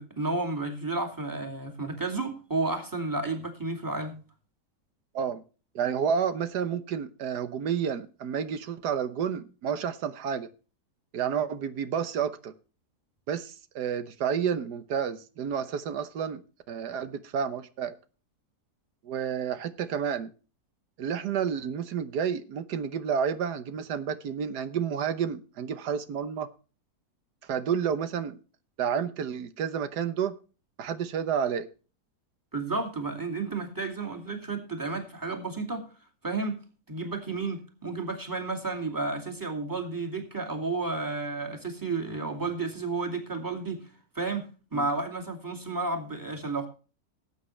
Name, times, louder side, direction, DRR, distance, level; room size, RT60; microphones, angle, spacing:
voice 1, 0.0-4.2 32.5-35.9 36.2-36.6 36.9-43.9 44.1-46.7, right 3 dB, 10° right, 3 dB, 2.4 m, -32 dB
voice 2, 5.7-10.5 11.1-12.5 13.3-16.4 16.7-17.9 19.0-20.3 21.0-26.5 27.5-28.4 28.8-30.3 30.8-31.7 44.7-44.9, right 7 dB, 90° right, 11 dB, 1.5 m, -30 dB
18.5 x 8.5 x 3.2 m, 0.35 s
omnidirectional pair, 1.7 m